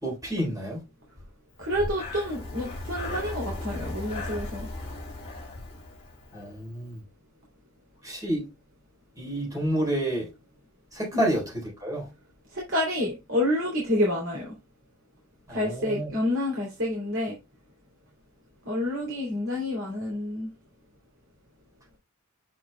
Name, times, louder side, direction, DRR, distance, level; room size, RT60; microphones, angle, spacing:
voice 1, 0.0-0.8 6.3-7.0 8.0-8.4 9.2-10.3 10.9-12.1 15.5-16.1, right 1 dB, 15° right, 3.8 m, -29 dB
Breathing, 1.6-6.5, left 2 dB, 30° left, 2.4 m, -36 dB
voice 2, 1.6-4.7 11.1-11.2 12.5-14.5 15.5-17.4 18.7-20.5, left 1 dB, 70° right, 2.9 m, -28 dB
7.7 x 6.0 x 2.2 m
head